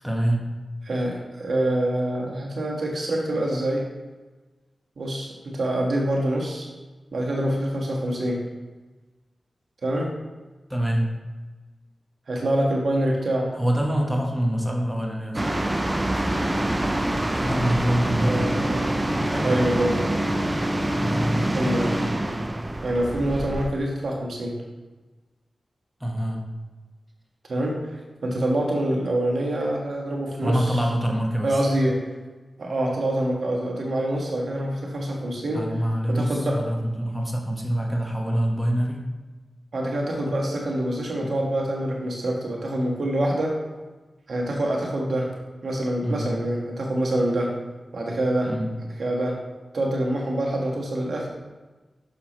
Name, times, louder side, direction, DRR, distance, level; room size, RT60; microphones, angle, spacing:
voice 1, 0.0-0.4 10.7-11.0 13.5-15.5 17.4-18.6 19.3-19.7 21.0-21.6 26.0-26.4 30.4-31.6 35.5-39.0 41.2-41.3 46.0-46.4 48.5-48.7, equal, 5° right, 0 dB, 1.3 m, -25 dB
voice 2, 0.9-3.8 5.0-6.7 7.1-8.4 9.8-10.1 12.3-13.5 18.2-20.2 21.5-21.9 22.8-24.5 27.5-30.8 31.4-32.0 32.6-35.6 36.1-36.6 39.7-43.6 44.3-45.3 45.6-47.5 47.9-48.5 49.0-49.4 49.7-51.3, right 1 dB, 70° right, -1 dB, 1.4 m, -25 dB
sound 1, 15.3-23.7, right 1 dB, 25° right, 0.5 m, -25 dB
6.3 x 5.7 x 3.0 m, 1.2 s
cardioid pair, 50°, 0 cm